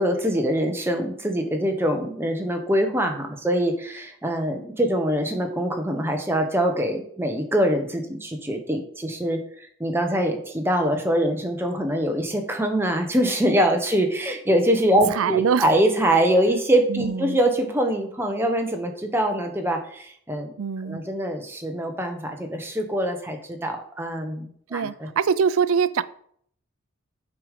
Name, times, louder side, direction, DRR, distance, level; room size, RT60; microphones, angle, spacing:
voice 1, 0.0-9.4 9.8-20.5 20.8-25.1, right 1 dB, 10° right, 4 dB, 0.9 m, -24 dB
voice 2, 15.1-15.7 16.9-17.4 20.6-21.0 24.7-26.0, right 6 dB, 80° right, 16 dB, 0.4 m, -23 dB
6.8 x 5.1 x 5.0 m, 0.63 s
head